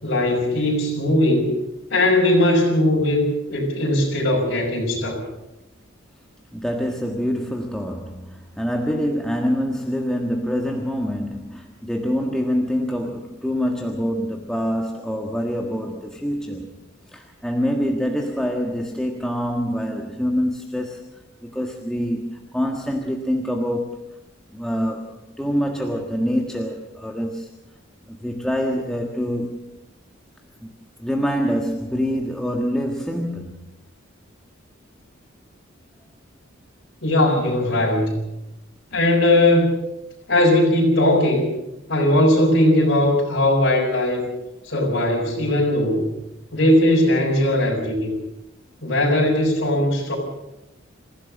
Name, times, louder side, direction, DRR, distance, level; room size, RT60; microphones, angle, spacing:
voice 1, 0.0-1.6 1.9-5.2 37.0-38.2 38.9-39.7 40.3-41.5 41.9-44.3 44.6-46.1 46.5-48.1 48.8-50.2, left 1 dB, 60° left, -4 dB, 5.7 m, -19 dB
voice 2, 6.5-16.7 17.1-24.0 24.5-27.5 28.1-29.6 30.6-30.7 31.0-33.6, equal, 5° left, 1 dB, 1.6 m, -25 dB
27.0 x 15.5 x 6.4 m, 0.91 s
head